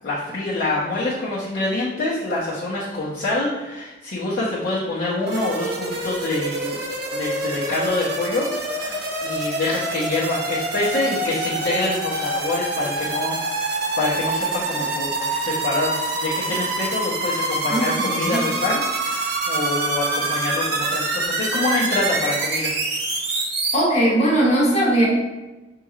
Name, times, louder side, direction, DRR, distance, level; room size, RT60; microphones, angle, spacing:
voice 1, 0.0-6.8 7.1-13.4 14.0-22.7, left 2 dB, 60° left, -9 dB, 0.8 m, -26 dB
sound 1, 5.3-23.8, right 2 dB, 60° right, 0.8 m, -26 dB
voice 2, 17.7-18.5 23.7-25.1, right 1 dB, 35° left, -4 dB, 1.1 m, -19 dB
6.6 x 3.1 x 2.4 m, 1.1 s
head